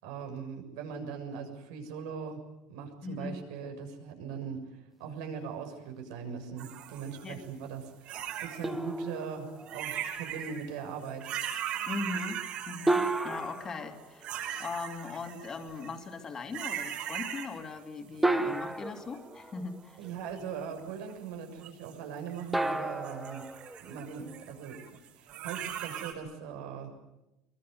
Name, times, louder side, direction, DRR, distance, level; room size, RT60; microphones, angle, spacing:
voice 1, 0.0-2.4 2.7-11.3 20.0-23.5 23.8-24.8 25.1-26.9, right 6 dB, 80° right, 4 dB, 6.8 m, -40 dB
voice 2, 3.0-3.4 7.2-7.4 11.9-14.3 14.6-20.0, left 4 dB, 20° left, 5 dB, 2.7 m, -39 dB
sound 1, 6.6-7.5 8.0-8.8 9.6-10.7 11.0-13.6 14.2-16.0 16.5-17.8 18.2-19.2 20.0-21.1 21.6-22.7 23.0-26.1, right 10 dB, 45° right, 6.0 m, -39 dB
sound 2, 8.6-10.1 12.9-14.9 16.5-16.6 18.2-20.1 22.5-24.6, right 2 dB, 5° right, 1.3 m, -33 dB
23.5 x 22.5 x 9.5 m, 0.96 s
cardioid pair, 165°, 3 cm